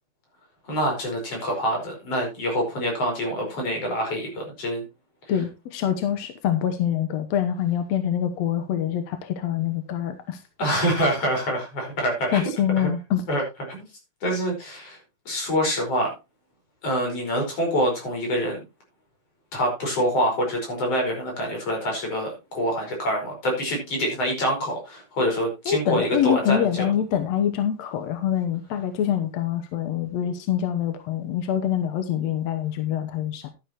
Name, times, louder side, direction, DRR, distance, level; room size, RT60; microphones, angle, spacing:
voice 1, 0.7-4.8 10.6-12.5 12.8-12.9 13.3-13.4 13.7-13.9 14.2-15.0 15.3-16.1 16.8-18.6 19.5-26.7, equal, 45° left, 1 dB, 6.0 m, -26 dB
voice 2, 5.3-10.4 12.3-13.2 25.7-33.5, left 10 dB, 65° left, 8 dB, 1.8 m, -25 dB
11.5 x 11.0 x 3.0 m, 0.26 s
omnidirectional pair, 4.0 m